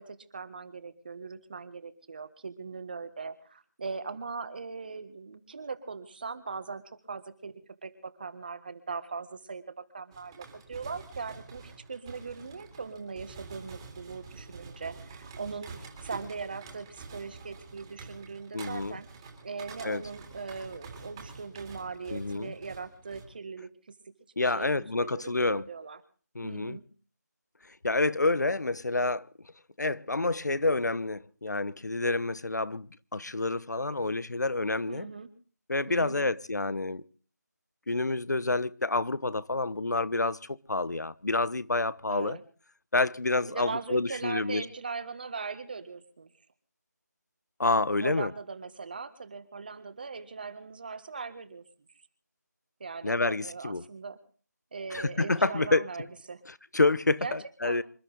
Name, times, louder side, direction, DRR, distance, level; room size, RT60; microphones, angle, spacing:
voice 1, 0.0-7.5 7.8-19.1 19.4-24.1 24.4-26.0 26.4-26.8 34.9-35.3 35.9-36.3 42.1-42.4 43.5-46.3 48.0-51.6 52.8-54.2 54.7-56.4 57.2-57.4 57.6-57.8, right 4 dB, 30° right, 1.6 m, -40 dB
sound 1, 10.1-23.3, right 4 dB, 15° right, 2.5 m, -47 dB
voice 2, 18.5-19.0 19.8-20.0 22.1-22.5 24.4-25.7 26.3-26.8 27.8-29.3 29.8-32.9 33.1-35.1 35.7-37.0 37.9-42.4 42.9-44.7 47.6-48.3 53.0-53.8 54.9-55.9 56.7-57.8, left 2 dB, 70° left, 1.0 m, -28 dB
27.0 x 12.5 x 3.9 m
figure-of-eight pair, 170°, 10 cm